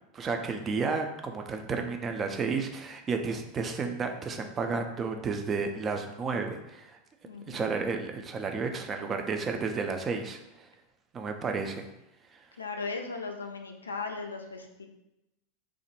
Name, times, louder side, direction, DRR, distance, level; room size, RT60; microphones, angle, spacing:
voice 1, 0.1-7.0 7.5-10.7 11.1-11.9, right 4 dB, 25° right, 4 dB, 0.3 m, -32 dB
voice 2, 7.3-7.7 12.6-14.9, left 4 dB, 80° left, 4 dB, 0.3 m, -37 dB
3.0 x 2.1 x 2.9 m, 0.95 s
figure-of-eight pair, 85°, 0 cm